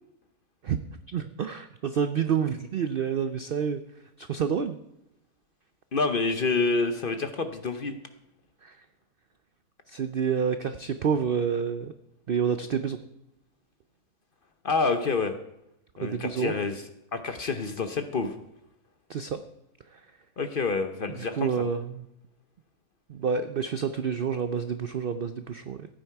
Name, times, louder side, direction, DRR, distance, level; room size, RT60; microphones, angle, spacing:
voice 1, 1.1-3.8 4.2-4.8 8.6-8.8 9.9-11.9 12.3-13.0 16.0-16.5 19.1-19.4 19.9-20.0 21.2-22.1 23.1-25.9, right 7 dB, 65° right, 10 dB, 0.5 m, -28 dB
voice 2, 5.9-8.0 14.6-15.3 16.0-16.8 17.1-18.4 20.4-21.6, left 4 dB, 45° left, 8 dB, 0.8 m, -28 dB
15.0 x 9.1 x 4.6 m, 0.84 s
omnidirectional pair, 1.6 m